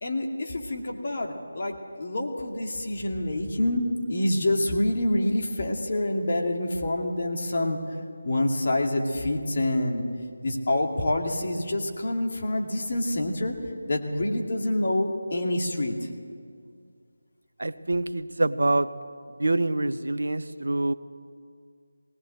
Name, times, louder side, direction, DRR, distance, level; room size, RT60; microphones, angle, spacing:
voice 1, 0.0-7.8 8.2-10.0 10.4-13.5 13.9-15.9, left 1 dB, 50° left, 1 dB, 2.3 m, -27 dB
voice 2, 17.6-18.9 19.4-20.9, right 2 dB, 70° right, 13 dB, 0.9 m, -25 dB
19.5 x 19.0 x 7.7 m, 2.2 s
figure-of-eight pair, 160°, 0 cm